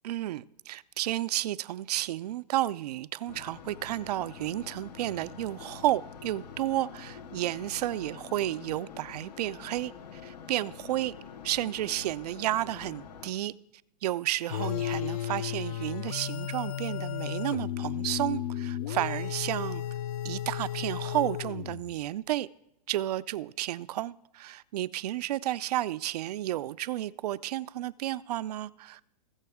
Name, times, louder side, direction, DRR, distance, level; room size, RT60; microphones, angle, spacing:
voice 1, 0.0-11.1 11.4-13.5 14.0-19.8 20.2-22.5 22.9-29.0, right 14 dB, 70° right, 0.4 m, -32 dB
sound 1, 3.3-13.3, left 7 dB, 80° left, 1.2 m, -46 dB
sound 2, 14.5-22.0, left 11 dB, 60° left, 0.5 m, -34 dB
20.0 x 6.9 x 3.6 m
supercardioid pair, 160°, 21 cm